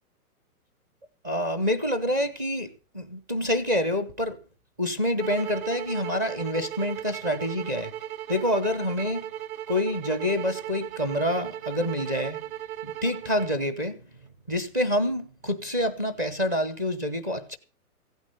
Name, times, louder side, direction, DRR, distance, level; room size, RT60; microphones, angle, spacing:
voice 1, 1.2-4.4 4.8-7.9 8.3-9.3 9.7-12.5 12.8-14.0 14.5-17.6, left 1 dB, 15° right, 0.6 m, -27 dB
sound 1, 5.2-13.6, right 11 dB, 60° right, 1.6 m, -37 dB
16.0 x 9.1 x 6.7 m
hypercardioid pair, 170°, 46 cm